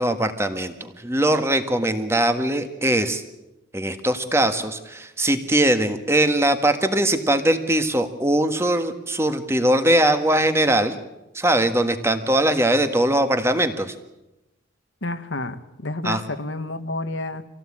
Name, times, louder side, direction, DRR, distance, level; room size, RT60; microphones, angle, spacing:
voice 1, 0.0-3.2 3.7-11.0 11.3-13.9 16.0-16.2, right 1 dB, 15° right, 8 dB, 1.6 m, -21 dB
voice 2, 15.0-17.5, left 2 dB, 70° left, 10 dB, 1.5 m, -30 dB
26.0 x 17.0 x 8.8 m, 0.96 s
head